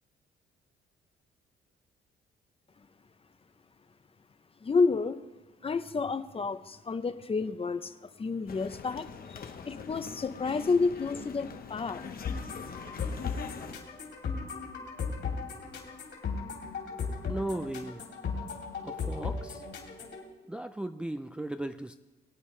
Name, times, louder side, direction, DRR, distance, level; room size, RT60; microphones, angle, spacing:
voice 1, 4.6-5.2 5.6-12.0, left 4 dB, 30° left, 12 dB, 0.7 m, -30 dB
sound 1, 8.5-13.7, left 6 dB, 50° left, 1.0 m, -43 dB
sound 2, 12.2-20.2, left 5 dB, 65° left, 3.3 m, -36 dB
voice 2, 17.3-18.0 18.8-19.6 20.5-21.9, right 1 dB, 5° right, 8 dB, 0.4 m, -36 dB
22.5 x 8.7 x 3.2 m, 1.1 s
cardioid pair, 90°, 20 cm